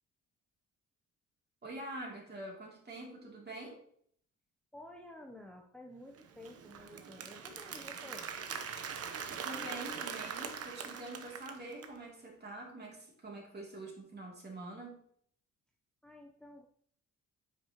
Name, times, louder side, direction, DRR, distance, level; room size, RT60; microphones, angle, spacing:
voice 1, 1.6-3.8 9.3-15.0, right 1 dB, 35° right, -2 dB, 2.8 m, -45 dB
voice 2, 4.7-8.3 16.0-16.7, left 1 dB, 5° left, 1 dB, 0.8 m, -52 dB
Applause, 6.2-12.0, right 7 dB, 55° right, 0.9 m, -42 dB
8.8 x 5.3 x 3.0 m, 0.63 s
cardioid pair, 90°, 30 cm